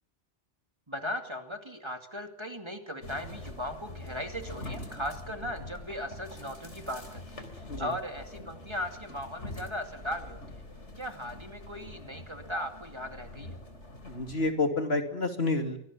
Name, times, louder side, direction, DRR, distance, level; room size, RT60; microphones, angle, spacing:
voice 1, 0.9-10.6 11.0-13.6, equal, 25° right, 5 dB, 2.5 m, -38 dB
sound 1, 3.0-14.5, left 2 dB, 80° left, 4.0 m, -44 dB
voice 2, 14.0-15.8, left 2 dB, 60° left, 6 dB, 2.9 m, -29 dB
24.0 x 18.5 x 8.9 m, 0.68 s
omnidirectional pair, 1.2 m